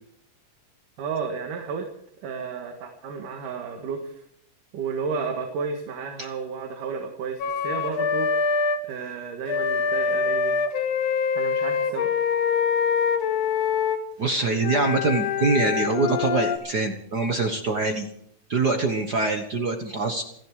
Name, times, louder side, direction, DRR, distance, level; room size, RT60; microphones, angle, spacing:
voice 1, 1.0-1.9 2.2-4.2 4.7-8.3 8.8-10.5 11.4-12.1, right 5 dB, 75° right, 4 dB, 3.2 m, -32 dB
Wind instrument woodwind instrument, 7.4-8.8 9.5-14.0 14.6-16.6, left 6 dB, 55° left, 2.2 m, -24 dB
voice 2, 14.2-18.1 18.5-20.2, right 3 dB, 60° right, 5 dB, 1.0 m, -24 dB
28.0 x 11.0 x 4.8 m, 0.74 s
omnidirectional pair, 3.8 m